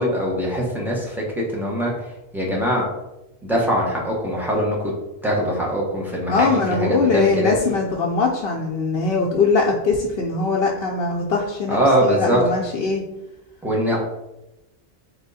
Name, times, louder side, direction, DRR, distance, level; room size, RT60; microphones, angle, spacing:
voice 1, 0.0-2.0 2.3-2.9 3.4-4.9 5.2-7.5 11.7-12.4 13.6-14.0, equal, ahead, -4 dB, 0.9 m, -22 dB
voice 2, 6.3-13.0, left 4 dB, 75° left, -1 dB, 0.8 m, -21 dB
3.4 x 3.0 x 4.0 m, 0.94 s
omnidirectional pair, 1.0 m